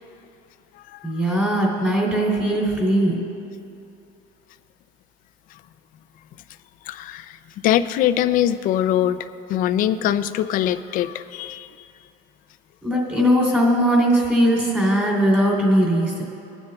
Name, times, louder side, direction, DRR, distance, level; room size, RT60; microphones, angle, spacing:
voice 1, 1.0-3.1 12.8-16.2, equal, 5° right, -3 dB, 2.9 m, -19 dB
voice 2, 6.9-7.4 7.6-9.2 9.5-11.7, left 11 dB, 45° left, 12 dB, 0.5 m, -22 dB
22.5 x 9.6 x 2.3 m, 2.7 s
cardioid pair, 145°, 20 cm